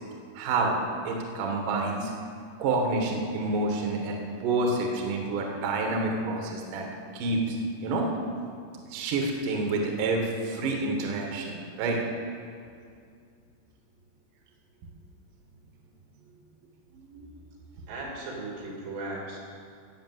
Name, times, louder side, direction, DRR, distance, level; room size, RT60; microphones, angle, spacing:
voice 1, 0.3-0.8 1.0-2.1 2.6-6.8 7.1-7.6 7.8-8.1 8.9-12.0 16.9-17.4, right 3 dB, 60° right, 1 dB, 2.7 m, -28 dB
voice 2, 17.9-19.4, right 2 dB, 85° right, -2 dB, 5.0 m, -37 dB
15.0 x 8.7 x 7.7 m, 2.3 s
omnidirectional pair, 4.8 m